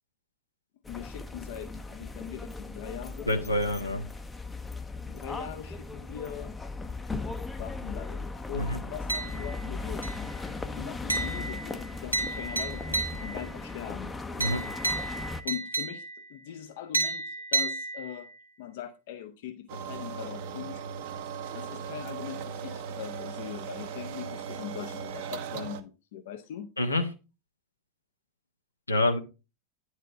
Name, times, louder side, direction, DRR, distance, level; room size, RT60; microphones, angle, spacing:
sound 1, 0.8-15.4, left 3 dB, 10° left, 0.7 m, -37 dB
voice 1, 0.9-3.3 5.1-6.5 7.6-10.0 10.7-14.1 15.4-16.0 16.3-18.3 18.6-20.8 21.5-26.7, left 10 dB, 50° left, 0.7 m, -41 dB
voice 2, 3.3-4.0 8.5-8.8 14.4-14.6 26.8-27.0 28.9-29.2, left 1 dB, 85° left, 1.1 m, -26 dB
sound 2, 9.1-9.7 10.0-10.4 11.1-13.5 14.4-16.3 16.9-18.4, right 2 dB, 85° right, 1.1 m, -32 dB
sound 3, 19.7-25.8, right 7 dB, 50° right, 0.8 m, -38 dB
9.9 x 4.8 x 4.2 m
figure-of-eight pair, 90°, 0 cm